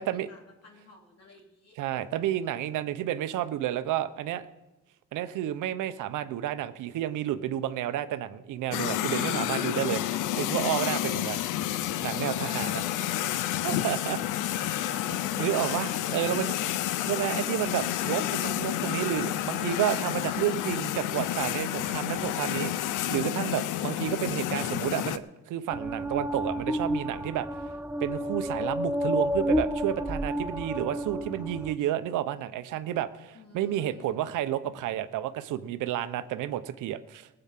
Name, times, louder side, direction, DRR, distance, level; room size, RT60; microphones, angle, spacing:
voice 1, 0.0-1.7 11.1-11.7 14.9-17.6 33.3-34.3, left 3 dB, 55° left, -1 dB, 3.0 m, -52 dB
voice 2, 1.8-4.4 5.1-10.0 10.4-11.4 12.0-13.1 13.6-14.2 14.6-14.9 15.4-16.5 17.1-27.5 28.0-37.3, right 12 dB, 90° right, 11 dB, 0.9 m, -31 dB
sound 1, 8.7-25.2, left 12 dB, 90° left, 0.7 m, -30 dB
sound 2, 25.7-31.7, equal, 5° right, 0.7 m, -30 dB
19.0 x 7.9 x 6.0 m, 1.1 s
cardioid pair, 90°, 30 cm